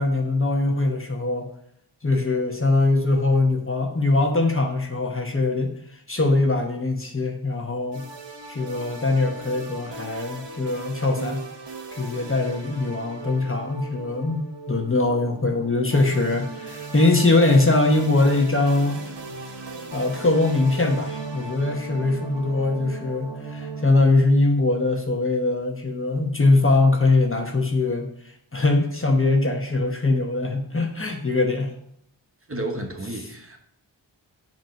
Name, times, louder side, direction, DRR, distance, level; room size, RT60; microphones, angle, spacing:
voice 1, 0.0-1.5 2.0-8.1 8.5-11.5 11.9-19.0 19.9-31.7 33.2-33.3, left 2 dB, 30° left, 2 dB, 1.1 m, -22 dB
sound 1, 7.9-23.9, right 3 dB, 65° right, 1.1 m, -38 dB
voice 2, 32.5-33.6, right 1 dB, 30° right, 3 dB, 1.0 m, -31 dB
7.9 x 3.0 x 5.7 m, 0.72 s
cardioid pair, 45°, 45 cm